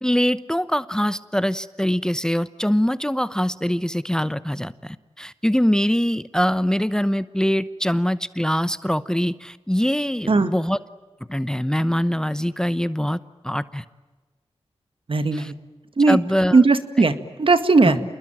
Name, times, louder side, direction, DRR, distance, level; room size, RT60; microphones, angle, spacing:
voice 1, 0.0-10.8 11.3-13.2 13.4-13.8 15.3-15.5 16.1-16.6 17.8-18.0, equal, 5° left, 15 dB, 0.9 m, -23 dB
voice 2, 15.1-15.5 16.0-16.2 16.5-18.0, right 3 dB, 55° right, 10 dB, 2.0 m, -17 dB
28.0 x 21.0 x 9.0 m, 1.3 s
cardioid pair, 55°, 11 cm